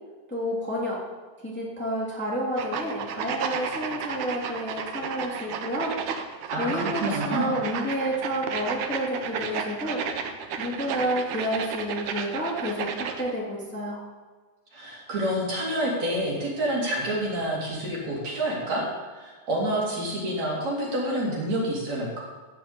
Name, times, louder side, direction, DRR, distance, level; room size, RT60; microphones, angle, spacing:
voice 1, 0.3-1.0 1.4-5.9 6.6-10.0 10.6-14.0, equal, 5° left, -4 dB, 2.3 m, -30 dB
sound 1, 2.6-13.3, right 7 dB, 85° right, 2.4 m, -33 dB
voice 2, 6.5-7.5 14.7-18.9 19.1-22.2, right 1 dB, 65° right, -5 dB, 4.7 m, -28 dB
15.5 x 6.0 x 6.8 m, 1.3 s
omnidirectional pair, 3.4 m